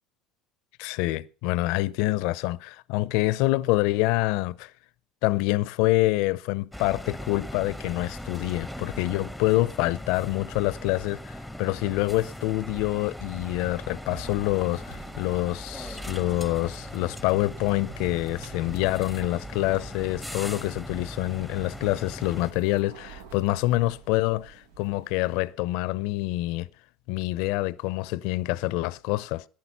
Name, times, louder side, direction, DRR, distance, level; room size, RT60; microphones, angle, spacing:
voice 1, 0.8-4.7 5.2-26.7 27.1-29.4, left 18 dB, 70° left, 0.5 m, -26 dB
sound 1, 6.7-22.5, left 1 dB, ahead, 0.9 m, -39 dB
sound 2, 14.1-25.5, right 6 dB, 90° right, 1.3 m, -49 dB
15.0 x 11.0 x 5.5 m
supercardioid pair, 95°, 0 cm